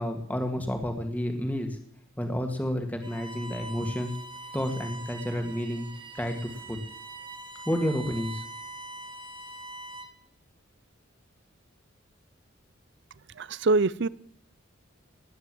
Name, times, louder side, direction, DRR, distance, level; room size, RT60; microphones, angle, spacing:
voice 1, 0.0-1.8 2.2-4.1 4.5-5.9 6.2-6.4 6.7-6.8 7.7-8.4, equal, 10° left, 5 dB, 2.1 m, -30 dB
Bowed string instrument, 3.0-10.3, right 2 dB, 25° right, 1.6 m, -43 dB
voice 2, 13.4-14.1, right 3 dB, 60° right, 20 dB, 0.6 m, -24 dB
19.0 x 9.5 x 7.9 m, 0.71 s
head